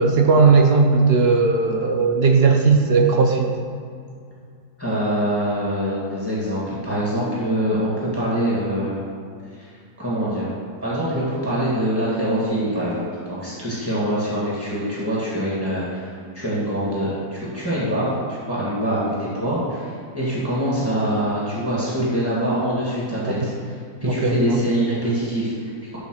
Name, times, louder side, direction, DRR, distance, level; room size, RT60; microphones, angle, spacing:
voice 1, 0.0-3.5 23.4-23.5 24.0-24.6, right 4 dB, 60° right, 3 dB, 0.7 m, -17 dB
voice 2, 4.8-9.0 9.6-9.7 10.0-10.5 10.8-16.1 16.3-26.0, equal, 5° right, -8 dB, 2.0 m, -24 dB
10.5 x 3.9 x 6.4 m, 2.3 s
omnidirectional pair, 1.7 m